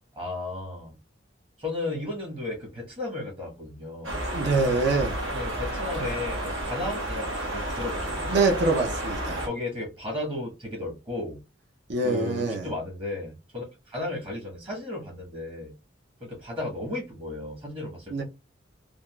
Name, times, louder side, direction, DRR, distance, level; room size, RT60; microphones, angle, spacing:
voice 1, 0.2-1.0 1.6-4.2 5.3-8.4 9.4-11.4 12.0-15.8 16.2-18.2, left 2 dB, 30° right, 1.0 m, -34 dB
sound 1, 4.0-9.5, right 1 dB, 80° right, 1.1 m, -31 dB
voice 2, 4.3-5.2 8.3-9.5 11.9-12.7 18.1-18.2, right 3 dB, 60° right, 0.6 m, -25 dB
3.4 x 2.4 x 2.2 m
head